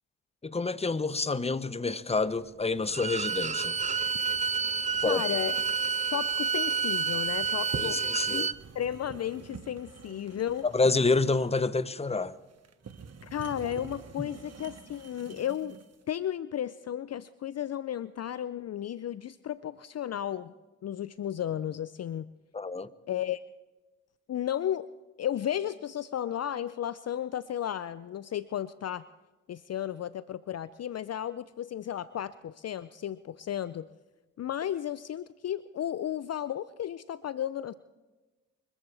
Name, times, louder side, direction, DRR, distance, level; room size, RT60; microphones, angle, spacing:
voice 1, 0.4-3.8 5.0-5.2 7.8-8.5 10.6-12.3 14.2-14.3 22.5-22.9, left 3 dB, 15° left, 0.9 m, -28 dB
sound 1, 2.7-16.0, right 6 dB, 45° right, 1.6 m, -47 dB
Bowed string instrument, 2.9-8.6, right 5 dB, 20° right, 0.5 m, -29 dB
voice 2, 5.1-5.5 6.1-8.0 8.3-8.5 8.7-10.7 13.2-15.8 16.1-20.5 20.8-22.3 23.1-23.4 24.3-24.9 25.2-29.0 29.5-33.9 34.4-37.7, left 10 dB, 45° left, 0.6 m, -34 dB
25.0 x 14.5 x 3.4 m
hypercardioid pair, 45°, 36 cm